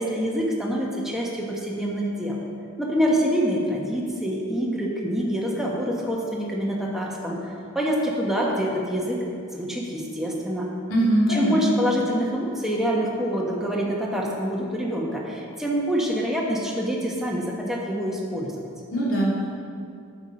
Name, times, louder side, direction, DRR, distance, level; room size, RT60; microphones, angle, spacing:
voice 1, 0.0-2.4 2.8-7.5 7.7-9.2 9.5-10.7 11.3-18.5, equal, ahead, -3 dB, 1.3 m, -26 dB
voice 2, 10.9-11.7 18.9-19.4, right 1 dB, 70° left, -6 dB, 2.7 m, -21 dB
9.2 x 7.3 x 5.4 m, 2.5 s
head